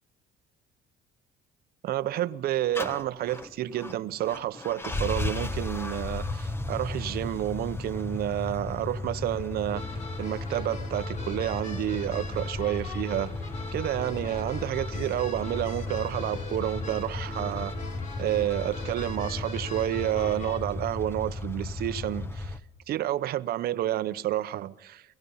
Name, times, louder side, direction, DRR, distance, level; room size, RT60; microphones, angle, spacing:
voice 1, 1.8-9.8 10.2-13.3 13.7-17.7 18.2-22.5 22.9-25.0, right 13 dB, 65° right, 0.8 m, -30 dB
sound 1, 2.8-22.6, left 2 dB, 15° left, 1.1 m, -35 dB
sound 2, 9.7-20.6, left 3 dB, 45° left, 3.1 m, -41 dB
29.5 x 17.5 x 5.6 m
cardioid pair, 110°, 17 cm